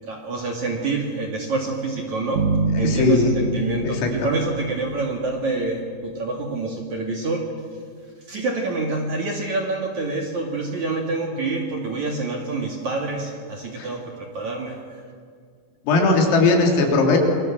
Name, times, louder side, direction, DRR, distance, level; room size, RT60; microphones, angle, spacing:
voice 1, 0.0-2.4 2.8-7.5 8.3-14.8, right 3 dB, 45° right, 1 dB, 2.7 m, -27 dB
sound 1, 2.4-5.8, right 2 dB, 70° right, 4.1 m, -26 dB
voice 2, 2.8-3.3 3.8-4.1 13.8-13.9 15.8-17.2, left 3 dB, 85° left, 1 dB, 6.1 m, -18 dB
28.0 x 23.0 x 7.5 m, 2.1 s
omnidirectional pair, 5.8 m